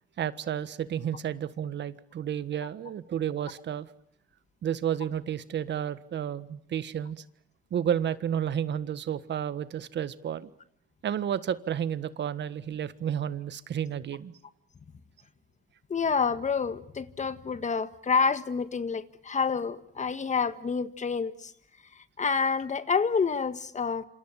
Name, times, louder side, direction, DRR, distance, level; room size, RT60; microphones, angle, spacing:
voice 1, 0.2-3.9 4.6-7.2 7.7-10.5 11.0-14.3, right 9 dB, 60° right, 1.5 m, -31 dB
voice 2, 15.9-21.5 22.2-24.1, left 5 dB, 35° left, 1.7 m, -28 dB
27.5 x 27.0 x 7.5 m
cardioid pair, 90°, 20 cm